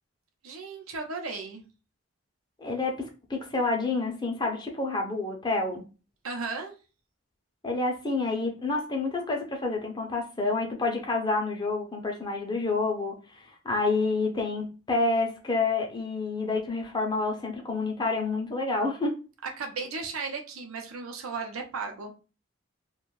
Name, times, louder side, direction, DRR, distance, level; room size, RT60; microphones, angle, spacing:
voice 1, 0.4-1.6 6.2-6.7 19.4-22.1, right 4 dB, 90° right, 3 dB, 0.7 m, -35 dB
voice 2, 2.6-5.8 7.6-19.2, left 3 dB, 20° left, 1 dB, 0.5 m, -28 dB
2.5 x 2.3 x 3.1 m, 0.32 s
head